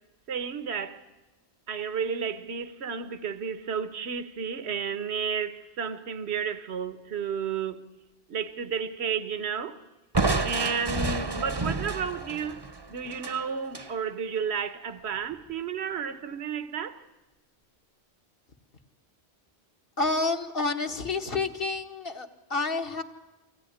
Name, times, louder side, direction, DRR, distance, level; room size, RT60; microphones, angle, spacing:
voice 1, 0.3-1.0 1.7-7.8 8.3-9.8 10.4-12.6 12.9-17.0, right 6 dB, 75° right, 1.3 m, -32 dB
Crushing, 10.1-13.9, right 3 dB, 25° right, 0.8 m, -30 dB
voice 2, 20.0-23.0, left 3 dB, 55° left, 1.8 m, -29 dB
24.5 x 16.5 x 10.0 m
omnidirectional pair, 1.1 m